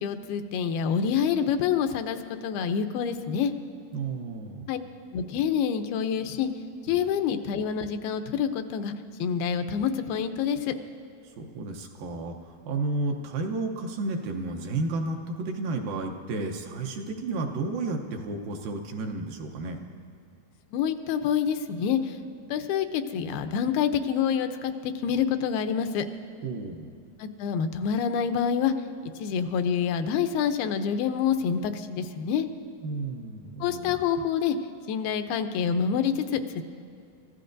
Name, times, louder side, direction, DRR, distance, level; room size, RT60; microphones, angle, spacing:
voice 1, 0.0-3.5 4.7-4.8 5.1-6.5 6.9-8.9 9.2-10.7 20.7-22.2 22.5-26.1 27.2-28.7 29.2-32.5 33.6-34.6 34.9-36.6, left 7 dB, 85° left, 8 dB, 2.6 m, -27 dB
voice 2, 3.9-4.7 6.9-7.0 11.4-19.8 26.4-26.9 32.8-34.0, right 3 dB, 75° right, 3 dB, 2.5 m, -32 dB
29.5 x 15.0 x 2.6 m, 2.6 s
omnidirectional pair, 4.3 m